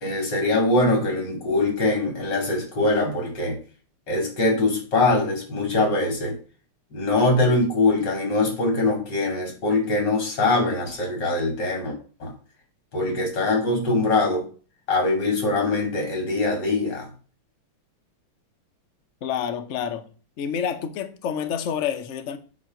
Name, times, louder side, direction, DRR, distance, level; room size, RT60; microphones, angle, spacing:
voice 1, 0.0-3.6 4.1-6.4 6.9-12.3 12.9-14.4 14.9-17.1, left 2 dB, 55° left, 3.1 m, -23 dB
voice 2, 19.2-20.1 20.4-22.4, left 8 dB, 80° left, 0.6 m, -28 dB
8.5 x 3.2 x 6.3 m
omnidirectional pair, 2.4 m